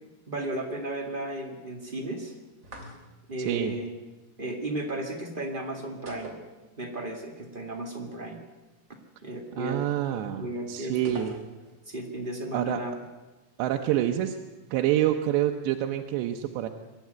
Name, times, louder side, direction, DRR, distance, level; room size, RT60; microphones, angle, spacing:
voice 1, 0.3-2.3 3.3-3.9 4.4-6.4 6.8-8.4 9.2-9.8 10.1-11.2 11.8-12.9, right 1 dB, 40° right, 1 dB, 0.7 m, -34 dB
sound 1, 2.6-3.4 6.1-7.1 7.4-7.5 11.0-11.8, right 3 dB, 20° right, 2.3 m, -43 dB
voice 2, 9.6-11.4 12.5-12.8 13.6-14.4 14.7-16.7, right 12 dB, 90° right, 4 dB, 3.2 m, -27 dB
23.0 x 12.5 x 9.3 m, 1.1 s
omnidirectional pair, 4.9 m